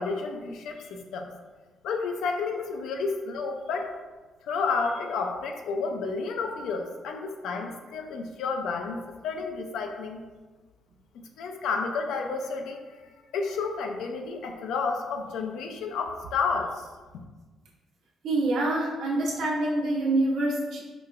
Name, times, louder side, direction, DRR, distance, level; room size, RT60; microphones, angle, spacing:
voice 1, 0.0-1.3 1.8-3.9 4.5-10.2 11.1-13.0 13.3-16.9, left 4 dB, 80° left, 4 dB, 0.4 m, -31 dB
voice 2, 18.2-20.8, right 2 dB, 75° right, -4 dB, 0.8 m, -26 dB
4.9 x 2.2 x 2.4 m, 1.3 s
cardioid pair, 90°, 0 cm